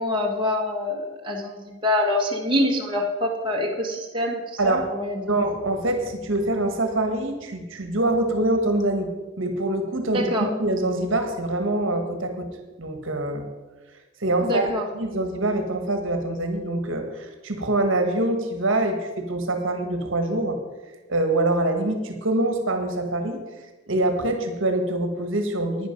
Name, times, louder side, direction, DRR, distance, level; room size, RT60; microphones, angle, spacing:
voice 1, 0.0-5.4 10.1-10.5 14.4-14.8, left 1 dB, 25° right, -1 dB, 1.5 m, -25 dB
voice 2, 5.3-9.1 9.4-10.3 10.6-12.5 12.8-13.5 14.2-14.7 14.9-20.6 21.1-23.4 23.9-25.9, right 1 dB, 65° right, 6 dB, 1.4 m, -24 dB
11.5 x 9.7 x 5.2 m, 1.2 s
head